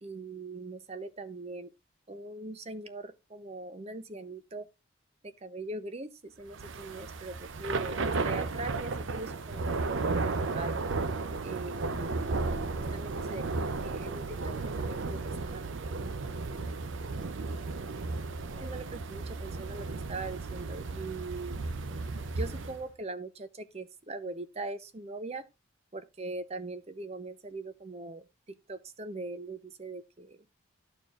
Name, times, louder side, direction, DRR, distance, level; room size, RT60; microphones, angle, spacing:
voice 1, 0.0-1.7 2.1-4.7 5.2-9.6 9.9-10.8 11.4-15.6 18.5-21.6 22.4-25.5 25.9-30.4, right 2 dB, 30° right, 0.7 m, -41 dB
Thunder / Rain, 6.5-22.8, right 3 dB, 70° right, 0.6 m, -34 dB
13.0 x 4.5 x 2.4 m
head